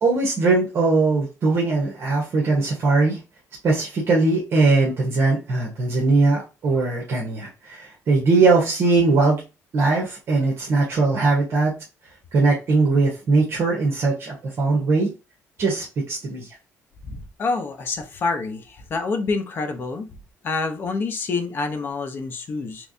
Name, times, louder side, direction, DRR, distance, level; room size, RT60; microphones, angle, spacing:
voice 1, 0.0-3.2 3.6-9.4 9.7-11.7 12.3-15.1 15.6-16.5, right 3 dB, 45° right, -2 dB, 1.1 m, -20 dB
voice 2, 17.0-20.2 20.4-22.9, left 4 dB, 40° left, 6 dB, 0.8 m, -27 dB
3.3 x 3.2 x 2.7 m, 0.29 s
cardioid pair, 145°, 6 cm